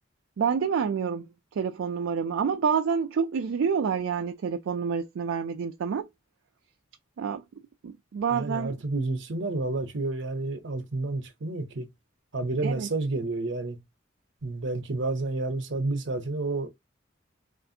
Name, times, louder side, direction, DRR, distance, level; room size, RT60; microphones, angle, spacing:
voice 1, 0.4-1.3 1.5-6.1 7.2-7.4 7.8-8.8 12.6-12.9, right 6 dB, 85° right, 0.4 m, -28 dB
voice 2, 8.3-11.9 12.3-13.8 14.4-16.7, right 2 dB, 65° right, 0.7 m, -30 dB
3.3 x 2.5 x 2.6 m
head